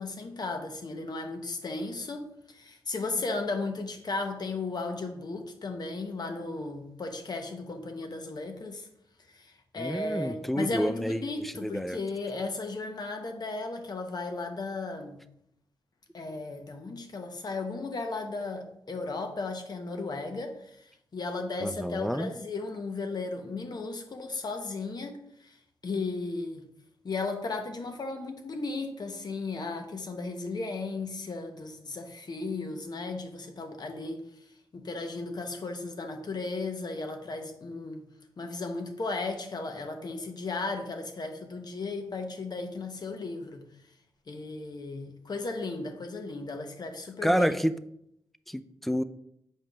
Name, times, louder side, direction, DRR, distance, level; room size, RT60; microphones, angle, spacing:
voice 1, 0.0-8.9 9.3-15.2 16.1-25.6 25.8-26.7 27.0-34.2 34.7-38.1 38.4-43.7 44.3-47.5, left 3 dB, 55° left, 5 dB, 1.0 m, -35 dB
voice 2, 9.8-12.0 21.6-22.3 47.2-47.8 48.5-49.0, equal, ahead, 13 dB, 0.4 m, -29 dB
7.4 x 5.2 x 2.5 m, 0.77 s
cardioid pair, 45°, 8 cm